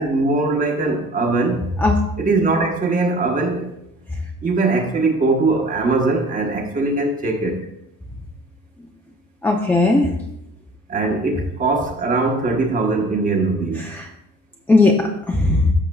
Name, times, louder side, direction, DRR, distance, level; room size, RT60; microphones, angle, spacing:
voice 1, 0.0-1.6 2.2-3.8 4.4-7.6 10.9-13.9, right 3 dB, 25° right, 3 dB, 1.1 m, -21 dB
voice 2, 9.4-10.1 13.9-14.0 14.7-15.7, left 2 dB, 5° left, 0 dB, 0.5 m, -16 dB
13.5 x 6.3 x 2.3 m, 0.81 s
cardioid pair, 165°, 32 cm